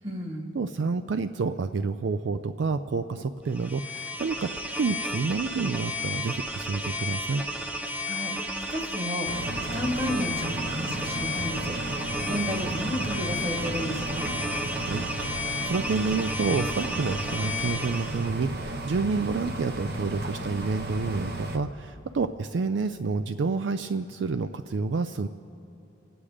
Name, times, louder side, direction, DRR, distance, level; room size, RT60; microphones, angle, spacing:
voice 1, 0.0-0.6 8.0-8.3 8.7-9.3 9.7-14.3, equal, 30° right, 3 dB, 1.7 m, -32 dB
voice 2, 0.5-7.4 14.7-25.3, right 4 dB, 75° right, 10 dB, 0.4 m, -29 dB
sound 1, 3.5-18.3, left 1 dB, 5° right, 0.7 m, -33 dB
sound 2, 9.3-21.6, right 1 dB, 55° right, 0.9 m, -34 dB
25.5 x 9.0 x 5.0 m, 3.0 s
head